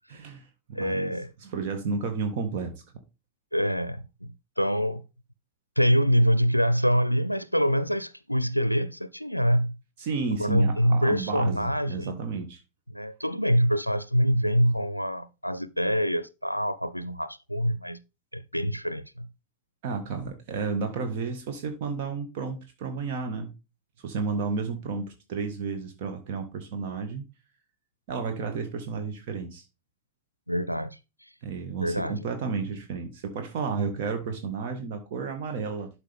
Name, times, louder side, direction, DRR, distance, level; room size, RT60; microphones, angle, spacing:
voice 1, 0.1-1.1 1.4-2.8 10.0-12.6 19.8-23.5 24.0-27.2 28.1-29.7 31.4-35.9, right 4 dB, 50° right, 1.5 m, -32 dB
voice 2, 0.7-1.3 3.5-5.0 5.8-9.8 10.4-12.2 12.9-18.0 18.3-19.3 30.5-31.3 31.8-32.2, equal, 90° left, 0.5 m, -25 dB
11.5 x 5.1 x 3.5 m
figure-of-eight pair, 90°, 0 cm